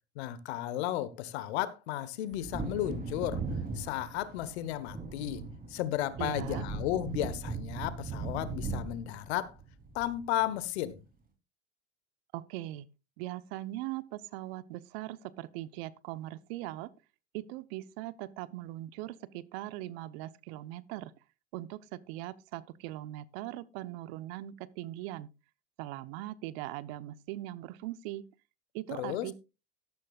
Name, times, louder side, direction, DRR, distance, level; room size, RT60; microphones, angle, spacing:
voice 1, 0.1-3.4 3.7-5.4 5.7-9.5 9.9-11.0 29.0-29.3, left 13 dB, 65° left, 1.3 m, -34 dB
Wind / Thunder, 2.3-10.6 10.8-10.9, right 4 dB, 25° right, 3.6 m, -38 dB
voice 2, 6.2-6.6 12.3-12.9 13.2-16.9 17.3-21.1 21.5-25.3 25.8-28.2 28.7-29.3, right 15 dB, 60° right, 1.0 m, -40 dB
13.0 x 12.5 x 2.4 m
hypercardioid pair, 85°, 34 cm